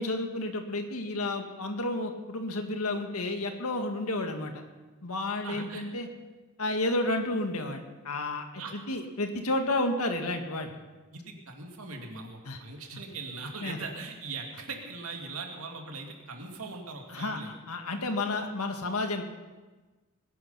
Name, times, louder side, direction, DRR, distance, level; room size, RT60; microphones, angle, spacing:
voice 1, 0.0-4.6 5.0-6.1 6.6-8.5 8.7-10.7 12.5-12.6 13.6-13.8 17.1-19.2, left 2 dB, 85° left, 5 dB, 1.8 m, -31 dB
voice 2, 5.4-5.8 8.6-8.7 11.1-17.5, right 3 dB, 70° right, 2 dB, 2.5 m, -40 dB
20.5 x 11.0 x 5.6 m, 1.2 s
head